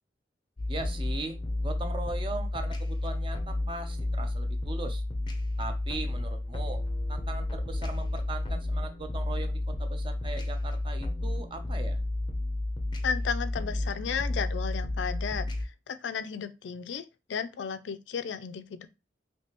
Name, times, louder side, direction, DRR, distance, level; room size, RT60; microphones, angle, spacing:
sound 1, 0.6-15.7, left 1 dB, 25° left, 0.5 m, -31 dB
voice 1, 0.7-5.0 5.6-6.8 7.1-12.0, right 3 dB, 30° right, 0.5 m, -39 dB
voice 2, 13.0-18.9, left 6 dB, 85° left, 0.4 m, -34 dB
3.3 x 2.8 x 2.9 m
head